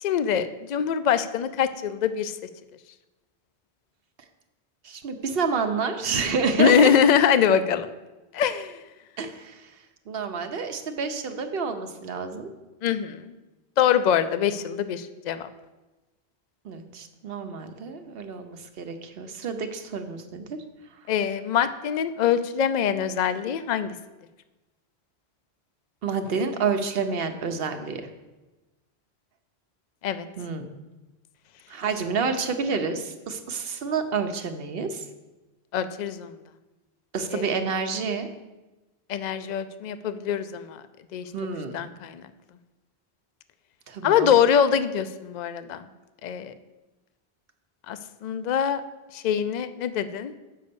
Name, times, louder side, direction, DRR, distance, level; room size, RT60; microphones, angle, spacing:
voice 1, 0.0-2.3 6.6-7.9 8.3-8.8 12.8-13.3 13.8-15.5 21.1-23.9 30.0-30.3 35.7-36.3 37.3-37.4 39.1-40.8 41.1-41.3 41.7-42.2 44.0-45.8 46.2-46.5 47.9-48.8 49.1-50.3, left 8 dB, 55° left, 12 dB, 0.5 m, -23 dB
voice 2, 4.8-6.9 9.2-9.7 10.1-12.5 16.6-20.6 26.0-28.0 30.4-30.7 31.7-35.0 37.1-38.3 41.3-41.8 43.9-44.3, right 5 dB, 65° right, 7 dB, 0.9 m, -29 dB
6.6 x 5.3 x 6.8 m, 1.1 s
omnidirectional pair, 1.1 m